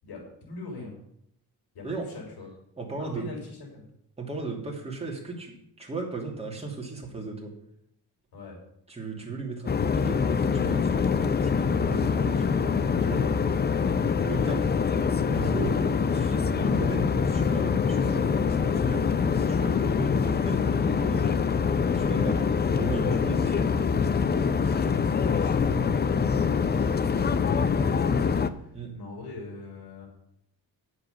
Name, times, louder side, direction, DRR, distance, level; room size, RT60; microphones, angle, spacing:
voice 1, 0.0-0.9 1.7-2.5 3.0-3.8 8.3-8.6 13.0-13.9 24.3-28.7 28.9-30.1, left 3 dB, 65° left, 0 dB, 5.4 m, -42 dB
voice 2, 2.8-3.3 4.2-7.5 8.9-12.8 13.1-13.2 14.2-14.7 15.3-23.7 28.7-28.9, right 3 dB, 15° right, -1 dB, 2.7 m, -36 dB
sound 1, 9.7-28.5, left 6 dB, 25° left, 0.5 m, -24 dB
9.3 x 8.0 x 6.5 m, 0.75 s
cardioid pair, 125°, 42 cm